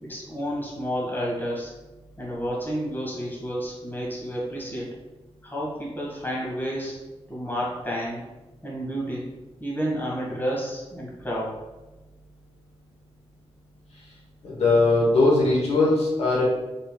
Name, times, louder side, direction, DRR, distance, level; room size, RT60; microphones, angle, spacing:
voice 1, 0.0-1.7 2.2-5.0 5.4-7.0 7.3-8.2 8.6-9.3 9.6-11.6, equal, 20° left, -4 dB, 1.4 m, -30 dB
voice 2, 14.4-16.4, left 2 dB, 75° left, -4 dB, 1.0 m, -20 dB
4.0 x 3.7 x 2.3 m, 1.1 s
cardioid pair, 75°, 11 cm